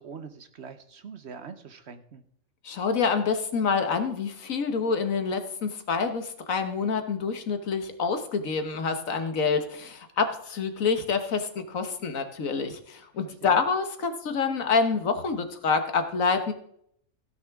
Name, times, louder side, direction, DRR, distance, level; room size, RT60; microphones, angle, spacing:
voice 1, 0.0-2.2 13.2-13.6, right 6 dB, 55° right, 9 dB, 1.1 m, -43 dB
voice 2, 2.6-16.5, left 5 dB, 75° left, 7 dB, 1.6 m, -27 dB
16.0 x 9.4 x 3.6 m, 0.68 s
omnidirectional pair, 1.4 m